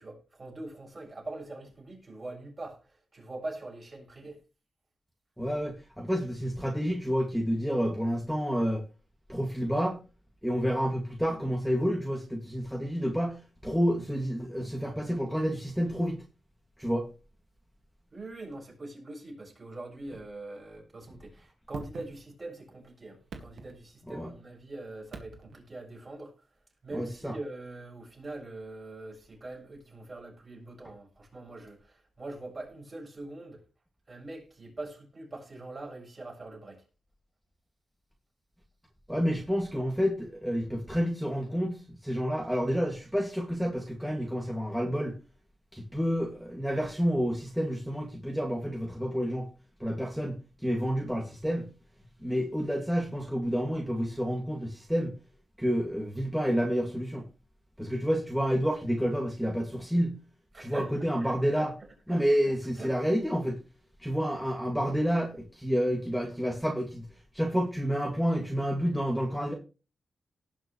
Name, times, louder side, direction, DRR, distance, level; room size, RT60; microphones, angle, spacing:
voice 1, 0.0-4.4 18.1-26.3 26.8-33.6 34.1-36.8 60.5-61.7 62.1-62.9, right 2 dB, 35° right, 7.0 m, -43 dB
voice 2, 5.4-8.8 9.3-10.0 10.4-16.2 16.8-17.1 24.1-24.3 26.9-27.3 39.1-45.1 45.7-49.5 49.8-51.7 52.2-55.1 55.6-57.2 57.8-60.2 60.6-61.7 62.1-63.6 64.0-67.0 67.3-69.5, equal, ahead, 2.3 m, -29 dB
sound 1, 21.7-22.6 23.1-24.3 25.1-25.8 27.3-27.4, right 4 dB, 90° right, 2.0 m, -46 dB
18.5 x 6.3 x 3.2 m
cardioid pair, 80°, 0 cm